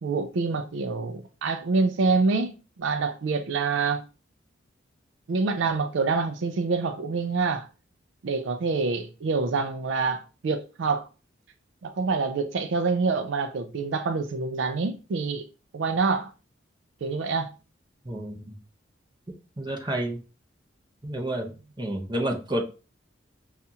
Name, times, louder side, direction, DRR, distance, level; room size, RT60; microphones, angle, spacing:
voice 1, 0.0-4.0 5.3-7.7 8.2-11.1 11.8-15.4 15.7-16.3 17.0-17.5, right 4 dB, 70° right, 0.4 m, -26 dB
voice 2, 18.0-18.5 19.6-20.2 21.0-22.6, right 1 dB, 20° right, 0.7 m, -30 dB
5.5 x 2.4 x 2.7 m
head